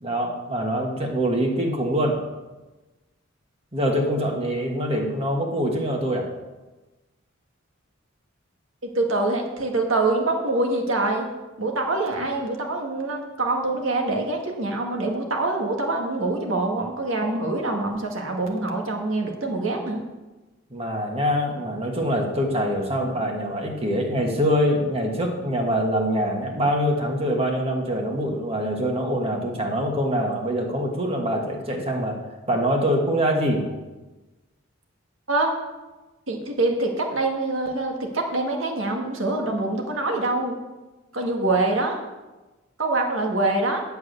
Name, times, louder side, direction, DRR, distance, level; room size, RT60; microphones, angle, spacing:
voice 1, 0.0-2.2 3.7-6.3 20.7-32.2 32.5-33.7, equal, 30° right, 1 dB, 1.5 m, -24 dB
voice 2, 9.0-11.3 11.6-20.0 35.3-35.5 36.3-40.6 41.1-42.0 42.8-43.8, right 2 dB, 75° right, 1 dB, 1.7 m, -25 dB
11.0 x 4.8 x 8.1 m, 1.2 s
head